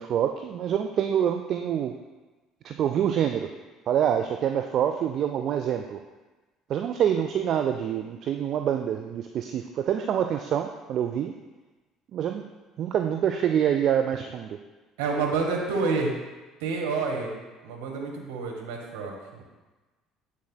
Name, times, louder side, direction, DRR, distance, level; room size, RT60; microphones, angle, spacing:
voice 1, 0.0-1.9 2.6-3.5 3.9-6.0 6.7-11.3 12.1-12.4 12.8-14.6, right 9 dB, 50° right, 5 dB, 0.3 m, -26 dB
voice 2, 15.0-16.2 16.6-17.3 17.6-19.4, right 4 dB, 65° right, 0 dB, 1.1 m, -28 dB
7.4 x 7.0 x 2.2 m, 1.2 s
figure-of-eight pair, 55°, 0 cm